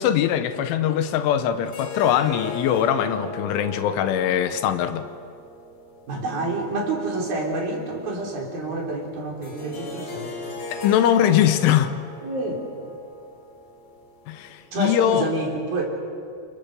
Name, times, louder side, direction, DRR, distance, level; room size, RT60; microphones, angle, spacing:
voice 1, 0.0-5.1 10.7-11.9 14.3-15.3, left 10 dB, 80° left, 9 dB, 3.4 m, -21 dB
sound 1, 1.7-7.6 9.4-14.6, left 2 dB, 50° left, 4.6 m, -37 dB
voice 2, 6.1-10.4 12.2-12.6 14.7-15.9, right 2 dB, 50° right, 0 dB, 5.1 m, -28 dB
29.0 x 27.0 x 6.8 m, 2.3 s
omnidirectional pair, 5.7 m